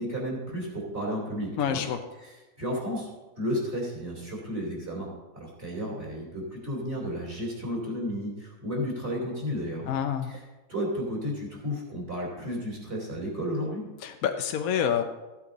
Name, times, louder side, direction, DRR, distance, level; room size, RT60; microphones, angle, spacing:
voice 1, 0.0-1.8 2.2-3.1 3.4-5.1 5.3-9.9 10.2-10.4 10.7-13.8, equal, 35° right, -3 dB, 3.3 m, -32 dB
voice 2, 1.6-2.0 9.9-10.3 14.0-15.0, left 8 dB, 65° left, 6 dB, 1.0 m, -27 dB
14.5 x 8.6 x 4.0 m, 1.2 s
omnidirectional pair, 1.7 m